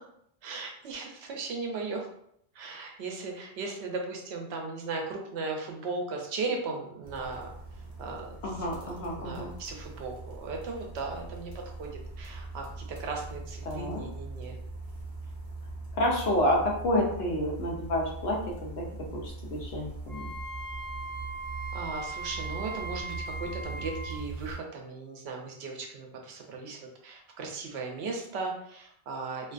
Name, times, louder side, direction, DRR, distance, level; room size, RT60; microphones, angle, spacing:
voice 1, 0.4-2.1 2.5-7.5 8.0-14.6 21.7-29.5, right 3 dB, 80° right, 1 dB, 0.8 m, -37 dB
sound 1, 7.0-24.6, right 3 dB, 35° right, 0.6 m, -41 dB
voice 2, 8.4-9.5 13.6-14.0 16.0-20.3, left 1 dB, 75° left, -1 dB, 0.8 m, -29 dB
Wind instrument woodwind instrument, 20.1-24.2, right 2 dB, 15° left, 0.6 m, -39 dB
2.5 x 2.2 x 2.4 m, 0.71 s
omnidirectional pair, 1.1 m